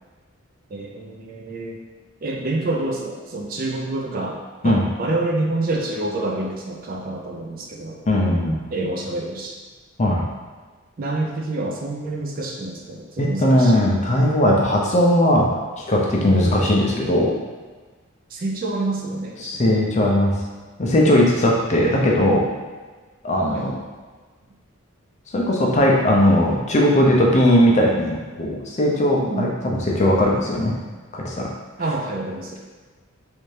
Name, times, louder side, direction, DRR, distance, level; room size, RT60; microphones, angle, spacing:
voice 1, 0.7-1.8 2.2-8.0 8.7-9.6 11.0-13.9 18.3-20.1 23.5-23.7 29.2-29.6 31.8-32.6, right 2 dB, 45° right, 0 dB, 0.4 m, -27 dB
voice 2, 8.1-8.5 10.0-10.2 13.2-15.5 15.9-17.3 19.4-20.3 20.8-22.4 23.2-23.8 25.3-30.7 31.1-31.5, left 1 dB, 35° left, -2 dB, 0.5 m, -18 dB
3.2 x 2.7 x 3.2 m, 1.4 s
head